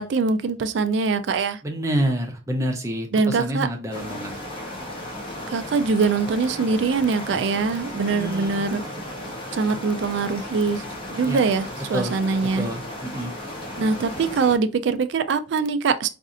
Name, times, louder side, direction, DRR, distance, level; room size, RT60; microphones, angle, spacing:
voice 1, 0.0-1.6 3.1-3.7 5.5-8.8 9.5-10.8 11.1-12.7 13.8-16.1, right 4 dB, 60° right, 0.4 m, -23 dB
voice 2, 1.6-4.3 8.1-8.6 11.2-11.4 11.9-12.1 12.6-13.3, right 1 dB, 15° right, 0.6 m, -27 dB
sound 1, 3.9-14.6, left 1 dB, 25° left, 0.9 m, -35 dB
4.1 x 2.6 x 2.5 m
head